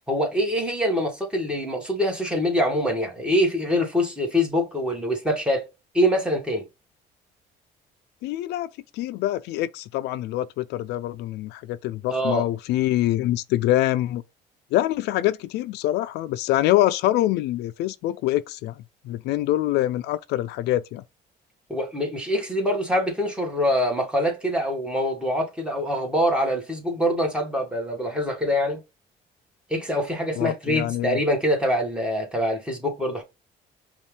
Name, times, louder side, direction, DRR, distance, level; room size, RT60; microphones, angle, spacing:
voice 1, 0.1-5.7 5.9-6.7 12.1-12.5 21.7-28.8 29.7-33.2, equal, 5° right, 1.9 m, -24 dB
voice 2, 8.2-14.2 14.7-21.0 30.4-31.2, left 14 dB, 85° left, 0.4 m, -25 dB
5.3 x 2.5 x 3.3 m
cardioid pair, 110°, 17 cm